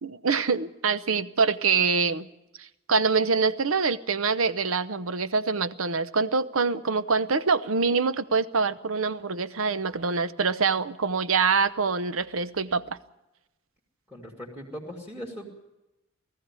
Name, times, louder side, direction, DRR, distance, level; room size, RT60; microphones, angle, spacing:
voice 1, 0.0-2.3 2.6-13.0, right 5 dB, 80° right, 14 dB, 0.8 m, -25 dB
voice 2, 14.1-15.5, equal, 5° right, -1 dB, 2.5 m, -39 dB
18.5 x 14.5 x 9.7 m, 0.97 s
head